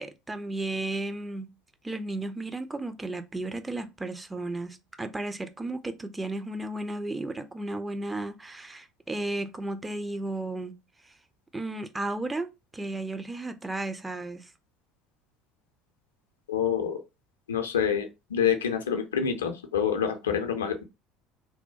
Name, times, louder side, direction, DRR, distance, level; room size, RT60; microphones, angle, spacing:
voice 1, 0.0-1.5 1.8-10.7 11.0-11.1 11.5-14.5, right 2 dB, 15° right, 0.3 m, -34 dB
voice 2, 16.5-17.0 17.5-20.8, left 8 dB, 75° left, 0.4 m, -27 dB
2.6 x 2.1 x 2.3 m
figure-of-eight pair, 65°, 0 cm